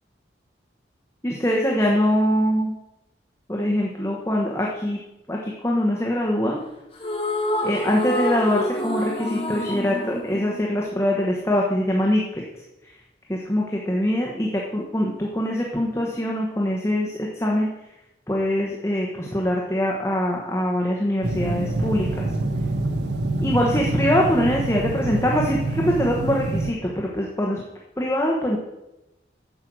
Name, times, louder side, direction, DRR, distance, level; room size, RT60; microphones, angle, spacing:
voice 1, 1.2-2.7 3.5-5.0 5.3-6.6 7.6-12.4 13.3-17.7 18.3-22.3 23.4-27.6 28.0-28.6, equal, 15° left, -2 dB, 1.1 m, -23 dB
sound 1, 6.9-11.4, left 1 dB, 30° left, 2.1 m, -28 dB
sound 2, 21.2-26.7, right 2 dB, 70° right, 0.8 m, -26 dB
10.0 x 7.5 x 6.2 m, 0.96 s
head